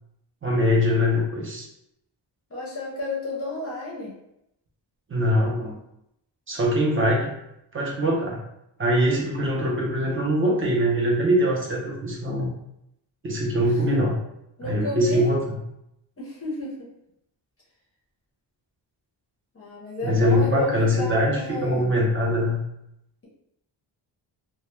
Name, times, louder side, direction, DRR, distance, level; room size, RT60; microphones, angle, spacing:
voice 1, 0.4-1.7 5.1-5.8 6.5-7.3 7.7-8.4 8.8-12.5 13.2-14.2 14.6-15.6 20.0-22.6, equal, 30° right, -3 dB, 0.4 m, -22 dB
voice 2, 2.5-4.1 13.6-14.0 14.6-15.3 16.2-16.9 19.5-22.0, left 2 dB, 30° left, -5 dB, 0.5 m, -32 dB
2.1 x 2.1 x 3.0 m, 0.80 s
wide cardioid pair, 175°, 46 cm